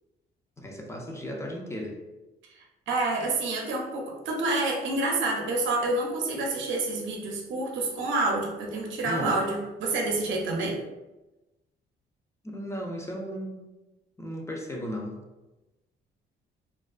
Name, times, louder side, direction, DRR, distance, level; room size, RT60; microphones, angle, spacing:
voice 1, 0.6-2.0 9.0-9.3 12.4-13.7 14.2-15.2, equal, 15° left, 0 dB, 0.4 m, -35 dB
voice 2, 2.6-10.8, right 2 dB, 75° right, -1 dB, 0.6 m, -28 dB
2.3 x 2.3 x 2.3 m, 1.0 s
cardioid pair, 90°, 20 cm